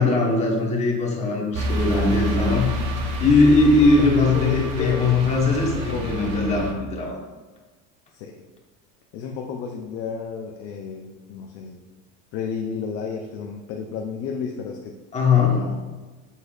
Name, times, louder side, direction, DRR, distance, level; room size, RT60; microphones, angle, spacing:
voice 1, 0.0-2.7 3.2-7.2 15.1-15.6, left 3 dB, 15° left, -2 dB, 1.2 m, -20 dB
sound 1, 1.5-6.7, equal, 45° right, 0.9 m, -28 dB
voice 2, 1.7-2.5 3.8-5.2 5.6-6.5 8.1-8.4 9.1-11.8 12.3-15.0 15.3-15.8, left 6 dB, 40° left, 2 dB, 0.6 m, -32 dB
8.0 x 7.2 x 2.4 m, 1.3 s
cardioid pair, 175°, 38 cm